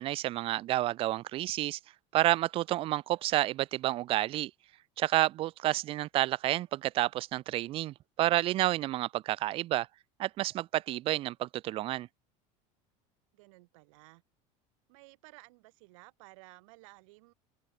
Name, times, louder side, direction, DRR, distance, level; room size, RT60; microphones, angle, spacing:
voice 1, 0.0-1.8 2.1-4.5 5.0-9.9 10.2-12.1, right 15 dB, 35° right, 0.4 m, -30 dB
voice 2, 13.3-14.2 14.9-17.3, right 25 dB, 90° right, 7.0 m, -55 dB
open air
cardioid pair, 160°, 16 cm